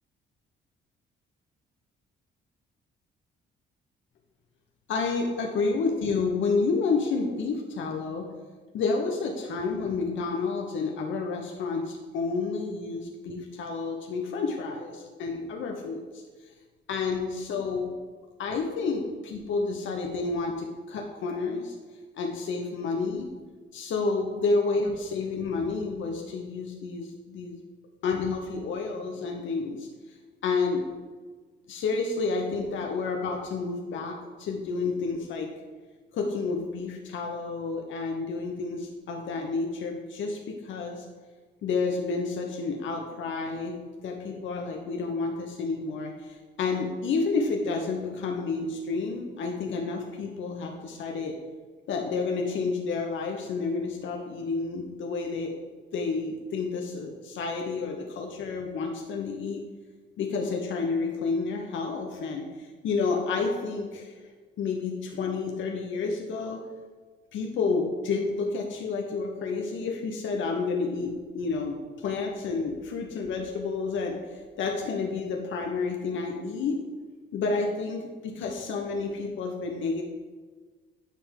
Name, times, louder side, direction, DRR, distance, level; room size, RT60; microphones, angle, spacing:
voice 1, 4.9-8.3 8.7-16.2 16.9-17.9 18.4-21.7 22.2-23.3 23.7-27.6 28.0-30.2 30.4-30.9 31.7-35.5 36.1-41.0 41.6-43.8 44.0-51.4 51.9-55.6 55.9-59.6 60.2-66.6 67.3-76.8 77.3-80.0, left 4 dB, 75° left, 1 dB, 1.0 m, -30 dB
10.5 x 3.5 x 5.2 m, 1.4 s
cardioid pair, 90°, 20 cm